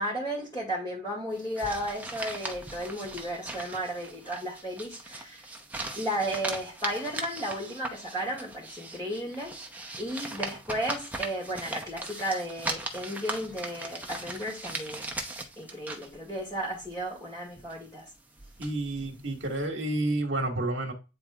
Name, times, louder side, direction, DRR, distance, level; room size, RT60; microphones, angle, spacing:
voice 1, 0.0-5.4 5.9-9.6 10.0-15.1 15.6-18.0, right 1 dB, 15° left, 2.4 m, -34 dB
sound 1, 1.3-19.7, right 2 dB, 10° right, 0.8 m, -39 dB
voice 2, 18.6-20.9, right 2 dB, 70° right, 1.5 m, -30 dB
9.3 x 4.2 x 2.4 m
head